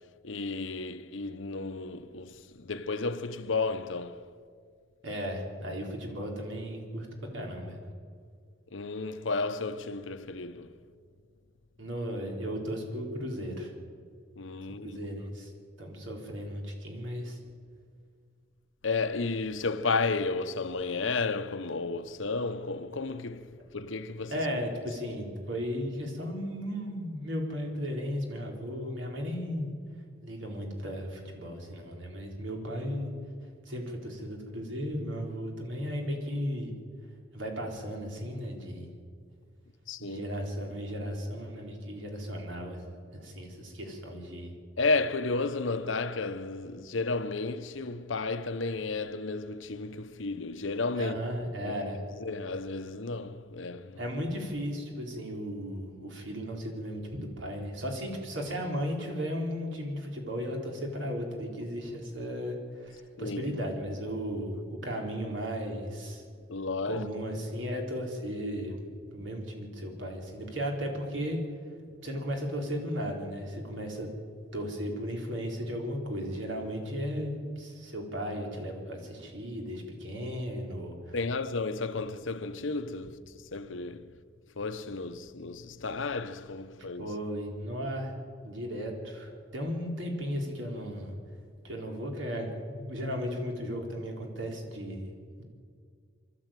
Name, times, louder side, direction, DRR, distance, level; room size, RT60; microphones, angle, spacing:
voice 1, 0.2-4.2 8.7-10.7 14.4-15.0 18.8-24.5 24.9-25.0 39.9-40.3 44.8-51.2 51.6-51.8 52.1-54.1 63.2-63.6 66.5-67.1 69.2-69.3 81.1-84.1 84.6-87.2, left 3 dB, 80° left, 1.0 m, -33 dB
voice 2, 5.0-7.1 7.3-7.8 11.8-13.7 14.8-15.5 15.8-17.4 24.3-29.7 30.2-33.1 33.7-36.7 37.3-38.9 40.0-42.8 43.1-44.5 51.0-52.0 54.0-66.3 66.9-68.7 69.1-71.4 72.0-74.1 74.5-81.2 87.0-88.1 88.4-91.1 91.6-95.4, equal, 70° right, 4.3 m, -35 dB
24.5 x 13.0 x 9.1 m
head